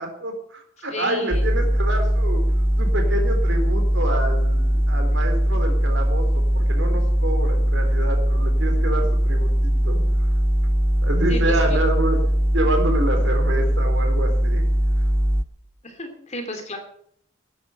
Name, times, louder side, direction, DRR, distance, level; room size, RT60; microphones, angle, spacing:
voice 1, 0.0-2.4 2.8-10.3 11.0-12.2 12.5-14.6, right 1 dB, 60° right, 4 dB, 3.8 m, -27 dB
voice 2, 0.8-1.4 11.3-11.8 15.8-16.8, left 1 dB, 35° left, 5 dB, 2.8 m, -33 dB
sound 1, 1.3-15.4, equal, 10° right, 0.6 m, -20 dB
13.0 x 9.5 x 8.2 m, 0.67 s
head